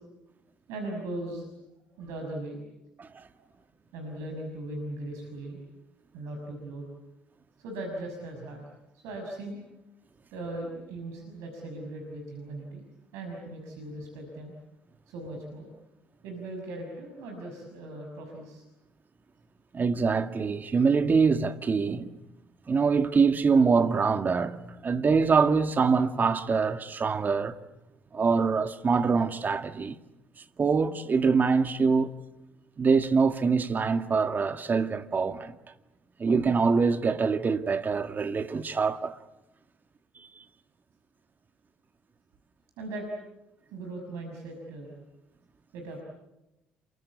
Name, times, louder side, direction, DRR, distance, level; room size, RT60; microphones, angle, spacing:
voice 1, 0.7-1.5 1.9-2.6 3.4-3.5 3.9-5.6 6.1-6.8 7.6-8.6 8.9-9.6 10.3-12.8 13.1-14.5 15.1-15.8 16.2-18.6 42.8-43.1 43.7-45.0 45.7-46.0, right 1 dB, 75° right, 5.8 m, -38 dB
voice 2, 19.7-22.1 22.7-27.6 28.1-30.0 30.6-32.1 32.8-35.6 36.2-39.2, right 5 dB, 40° right, 1.9 m, -24 dB
28.0 x 24.5 x 8.5 m
hypercardioid pair, 55°, 5 cm